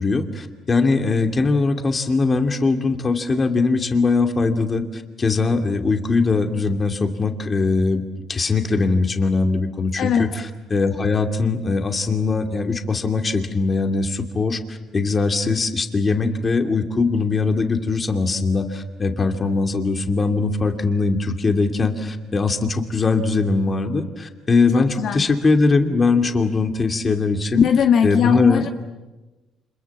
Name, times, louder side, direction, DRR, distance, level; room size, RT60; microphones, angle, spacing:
voice 1, 0.0-27.6 28.0-28.6, left 3 dB, 30° left, 5 dB, 2.6 m, -21 dB
voice 2, 10.0-10.3 24.7-25.2 27.5-28.7, left 8 dB, 65° left, 4 dB, 1.8 m, -19 dB
30.0 x 26.5 x 7.3 m, 1.1 s
cardioid pair, 120°, 0 cm